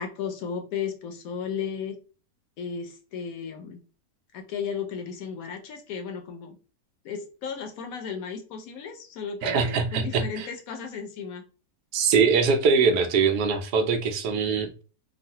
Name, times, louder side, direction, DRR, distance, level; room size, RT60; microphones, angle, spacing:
voice 1, 0.0-2.0 2.6-3.8 4.3-6.6 7.0-11.4, left 6 dB, 70° left, 1.0 m, -34 dB
voice 2, 9.4-10.5 11.9-14.8, right 5 dB, 80° right, 1.1 m, -23 dB
3.1 x 2.4 x 2.7 m
omnidirectional pair, 1.7 m